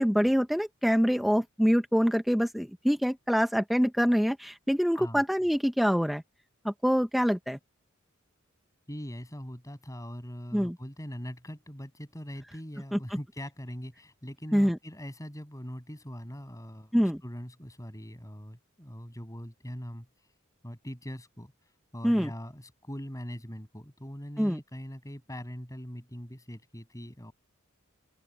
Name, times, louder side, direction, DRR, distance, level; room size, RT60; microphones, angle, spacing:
voice 1, 0.0-6.2 6.6-7.6 10.5-10.7 12.9-13.0 14.5-14.8 16.9-17.2 22.0-22.3 24.4-24.6, equal, ahead, 0.9 m, -25 dB
voice 2, 8.9-20.1 20.6-27.3, equal, 15° left, 7.2 m, -42 dB
open air
head